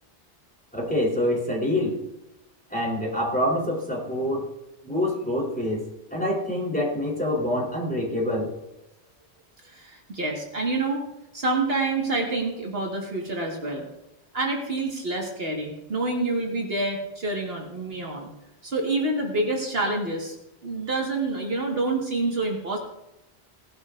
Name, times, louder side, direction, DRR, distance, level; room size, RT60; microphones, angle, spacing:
voice 1, 0.7-1.9 2.7-4.5 4.8-5.8 6.1-8.5, left 1 dB, 10° left, -4 dB, 3.5 m, -26 dB
voice 2, 9.6-11.0 11.3-13.8 14.3-18.3 18.6-20.4 20.6-22.8, right 2 dB, 60° right, 0 dB, 1.9 m, -27 dB
18.0 x 11.5 x 2.5 m, 0.94 s
omnidirectional pair, 1.1 m